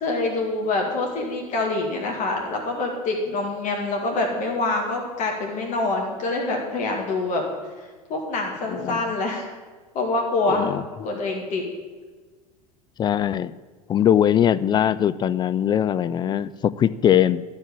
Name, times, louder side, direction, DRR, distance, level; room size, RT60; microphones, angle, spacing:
voice 1, 0.0-7.4 7.8-9.5 9.9-10.7 11.0-11.6, left 2 dB, 40° left, 0 dB, 2.2 m, -25 dB
voice 2, 8.7-9.0 10.5-10.8 11.1-11.2 13.0-13.5 13.9-17.4, left 10 dB, 20° left, 16 dB, 0.3 m, -21 dB
12.0 x 5.4 x 8.7 m, 1.4 s
figure-of-eight pair, 80°, 20 cm